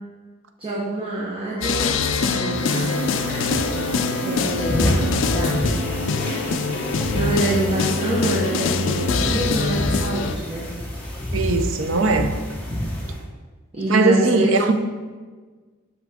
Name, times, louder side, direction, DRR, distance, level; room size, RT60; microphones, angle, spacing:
voice 1, 0.6-1.9 2.2-2.9 3.2-3.7 4.2-5.0 5.3-5.7 7.1-10.7 13.7-14.7, right 1 dB, 25° right, 0.9 m, -26 dB
sound 1, 1.4-9.4, right 2 dB, 10° right, 1.9 m, -33 dB
sound 2, 1.6-10.4, left 5 dB, 60° left, 0.4 m, -24 dB
sound 3, 2.5-13.2, left 1 dB, 10° left, 1.0 m, -28 dB
voice 2, 11.3-12.3 13.9-14.7, right 3 dB, 70° right, 0.5 m, -19 dB
5.9 x 5.9 x 3.6 m
head